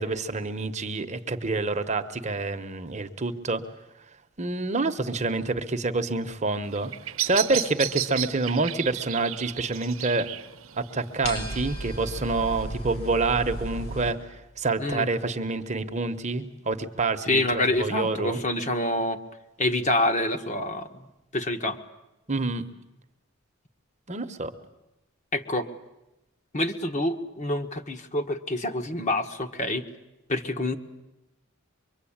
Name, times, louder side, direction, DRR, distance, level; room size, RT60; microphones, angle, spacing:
voice 1, 0.0-3.6 4.4-6.9 7.2-10.3 10.8-14.2 14.6-18.4 22.3-22.7 24.1-24.5, right 3 dB, 35° right, 8 dB, 1.1 m, -27 dB
Bird vocalization bird call bird song, 6.6-12.6, right 13 dB, 70° right, 0.9 m, -34 dB
sound 1, 11.2-14.1, right 1 dB, 90° left, 6.2 m, -34 dB
voice 2, 17.3-19.2 19.6-20.9 21.3-21.8 25.3-25.7 26.5-29.8 30.3-30.8, left 1 dB, 35° left, 6 dB, 1.5 m, -26 dB
24.0 x 23.5 x 8.8 m, 0.96 s
head